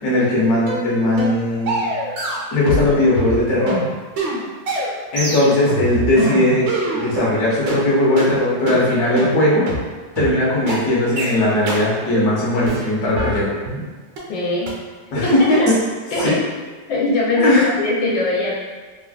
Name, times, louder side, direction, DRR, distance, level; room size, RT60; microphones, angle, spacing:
voice 1, 0.0-1.8 2.5-3.8 5.1-6.7 6.9-9.7 10.2-13.5 15.1-15.7 16.2-16.3 17.4-17.7, left 1 dB, 55° left, -7 dB, 1.1 m, -18 dB
sound 1, 0.7-0.8 1.2-1.4 1.7-2.9 3.2-7.3 7.7-7.8 8.2-8.3 8.7-8.8 9.2-9.3 9.7-9.8 10.2-10.3 10.7-10.8 11.2-11.3 11.7-11.8 12.2-12.3 12.7-13.8 14.2-14.3 14.7-14.8 15.2-15.3 15.7-15.8 16.2-16.3, right 1 dB, 70° right, 1.3 m, -24 dB
voice 2, 14.3-14.7 15.2-15.7 16.1-16.4 16.9-18.5, left 2 dB, 80° left, -5 dB, 1.4 m, -21 dB
3.3 x 2.3 x 2.4 m, 1.4 s
omnidirectional pair, 2.1 m